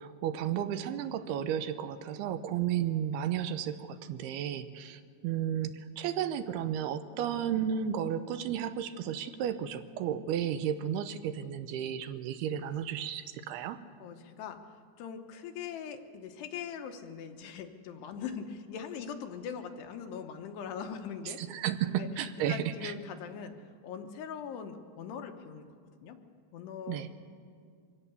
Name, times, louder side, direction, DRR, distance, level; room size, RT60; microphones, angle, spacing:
voice 1, 0.0-13.8 21.3-22.9 26.9-27.1, right 9 dB, 80° right, 11 dB, 2.7 m, -33 dB
voice 2, 14.0-14.6 15.0-21.4 21.8-22.1 22.4-23.5 23.8-25.7 26.0-26.2 26.5-27.0, left 7 dB, 85° left, 6 dB, 3.2 m, -41 dB
23.5 x 16.5 x 6.9 m, 2.2 s
omnidirectional pair, 4.7 m